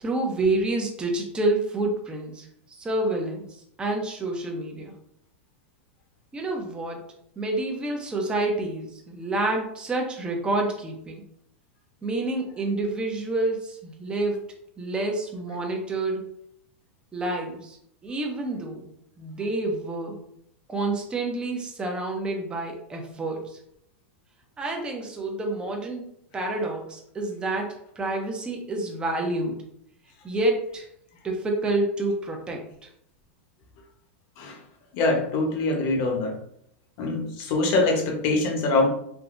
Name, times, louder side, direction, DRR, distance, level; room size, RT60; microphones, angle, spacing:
voice 1, 0.0-2.5 2.8-5.0 6.3-7.1 7.4-11.2 12.0-14.4 14.8-16.3 17.1-17.8 18.0-18.9 19.2-20.2 20.7-23.6 24.6-29.6 30.2-30.9 31.2-32.9, right 2 dB, 15° right, 1 dB, 0.6 m, -28 dB
voice 2, 34.9-36.4 37.0-38.9, left 2 dB, 50° left, 1 dB, 0.9 m, -24 dB
3.4 x 2.7 x 2.5 m, 0.71 s
supercardioid pair, 130°, 7 cm